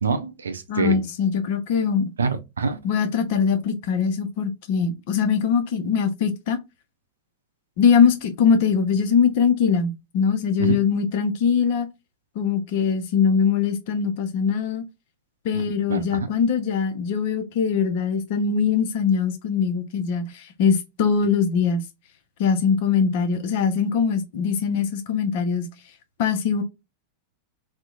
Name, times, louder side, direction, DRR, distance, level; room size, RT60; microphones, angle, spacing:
voice 1, 0.0-1.0 2.2-2.8 10.6-10.8 15.5-15.6 15.9-16.3, right 5 dB, 70° right, 0.4 m, -25 dB
voice 2, 0.7-2.1 2.8-6.6 7.8-11.9 12.4-14.8 15.4-21.8 22.4-25.7 26.2-26.6, left 6 dB, 50° left, 0.5 m, -22 dB
2.6 x 2.0 x 2.4 m
figure-of-eight pair, 90°, 0 cm